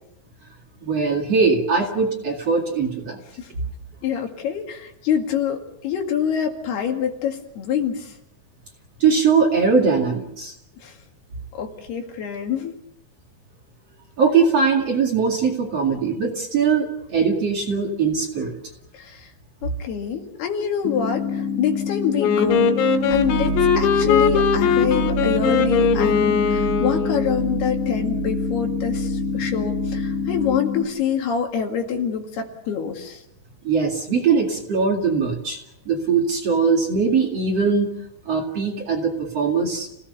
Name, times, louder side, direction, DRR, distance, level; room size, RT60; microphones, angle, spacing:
voice 1, 0.8-3.2 9.0-10.5 14.2-18.6 33.6-37.9 38.3-39.9, right 5 dB, 40° right, 0 dB, 2.8 m, -21 dB
voice 2, 4.0-8.1 10.8-10.9 11.5-12.8 18.9-19.3 19.6-33.2, left 8 dB, 65° left, 3 dB, 4.0 m, -26 dB
sound 1, 20.8-30.8, left 6 dB, 50° left, 6.6 m, -27 dB
Wind instrument woodwind instrument, 22.2-27.4, left 6 dB, 90° left, 4.0 m, -20 dB
sound 2, 22.4-30.6, right 9 dB, 60° right, 4.1 m, -30 dB
29.5 x 18.0 x 6.9 m, 0.82 s
omnidirectional pair, 5.1 m